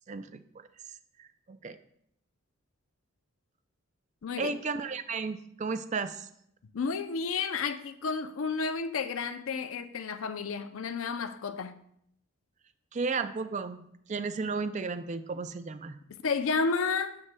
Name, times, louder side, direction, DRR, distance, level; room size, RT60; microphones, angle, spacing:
voice 1, 0.1-0.4 1.2-1.8 4.4-6.3 12.9-16.0, right 4 dB, 35° right, 0.4 m, -34 dB
voice 2, 6.7-11.7 16.2-17.2, left 5 dB, 70° left, 0.5 m, -31 dB
9.5 x 7.3 x 2.2 m
head